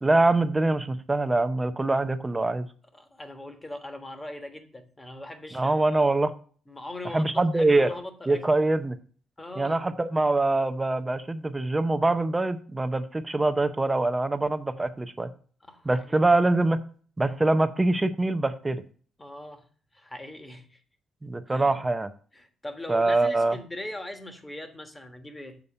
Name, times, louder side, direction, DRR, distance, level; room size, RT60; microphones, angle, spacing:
voice 1, 0.0-2.7 5.5-6.3 7.1-7.9 8.3-9.0 9.6-15.3 15.9-16.8 17.2-18.8 21.2-22.1 22.9-23.6, right 2 dB, 15° right, 10 dB, 0.6 m, -24 dB
voice 2, 2.9-6.2 6.7-8.5 9.4-9.8 15.6-16.2 19.2-20.8 21.5-21.8 22.3-25.6, left 1 dB, 15° left, 7 dB, 1.4 m, -40 dB
7.1 x 4.1 x 6.6 m, 0.43 s
cardioid pair, 90°, 0 cm